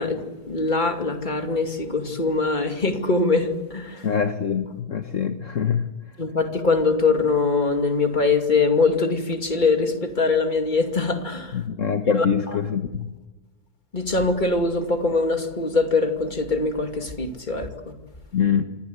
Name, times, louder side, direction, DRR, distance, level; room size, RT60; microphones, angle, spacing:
voice 1, 0.0-4.0 6.2-11.6 12.1-12.6 13.9-17.9, left 3 dB, 30° left, 2.7 m, -23 dB
voice 2, 4.0-5.9 11.5-13.1 18.3-18.6, left 7 dB, 55° left, 1.6 m, -24 dB
27.5 x 25.5 x 8.1 m
omnidirectional pair, 1.7 m